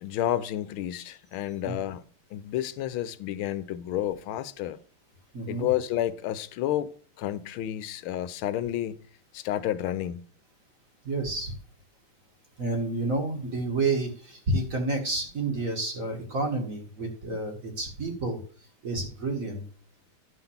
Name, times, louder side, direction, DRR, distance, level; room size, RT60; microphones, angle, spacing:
voice 1, 0.0-2.0 2.3-4.8 5.5-6.9 7.2-9.0 9.3-10.2, left 12 dB, 80° left, 1.5 m, -30 dB
voice 2, 5.3-5.7 11.0-11.6 12.6-19.6, right 2 dB, 40° right, 1.8 m, -30 dB
10.5 x 3.9 x 7.1 m
omnidirectional pair, 2.3 m